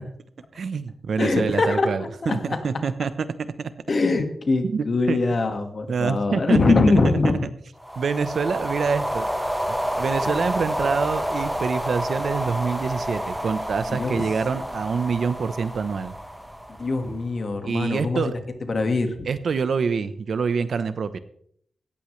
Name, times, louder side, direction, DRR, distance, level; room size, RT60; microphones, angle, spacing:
voice 1, 0.5-3.1 3.6-3.7 4.6-5.2 5.9-6.6 8.0-9.3 10.0-16.1 17.6-18.3 19.2-21.2, right 5 dB, 70° right, 12 dB, 0.9 m, -26 dB
voice 2, 1.2-2.6 3.9-7.5 10.2-10.3 13.9-14.2 16.8-18.3 18.7-19.3, left 3 dB, 45° left, 6 dB, 1.8 m, -23 dB
sound 1, 7.8-17.3, equal, ahead, 1.3 m, -29 dB
17.5 x 14.5 x 3.3 m, 0.66 s
wide cardioid pair, 130°, 0 cm